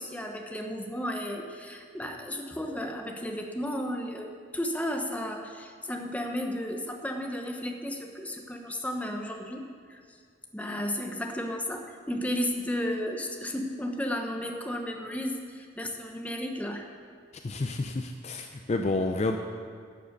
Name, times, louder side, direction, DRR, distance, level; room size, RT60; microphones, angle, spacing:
voice 1, 0.0-9.6 9.9-10.0 10.5-16.9, equal, 10° left, 3 dB, 0.9 m, -33 dB
voice 2, 17.4-19.4, left 2 dB, 35° left, 5 dB, 0.5 m, -29 dB
11.5 x 7.5 x 6.7 m, 2.1 s
head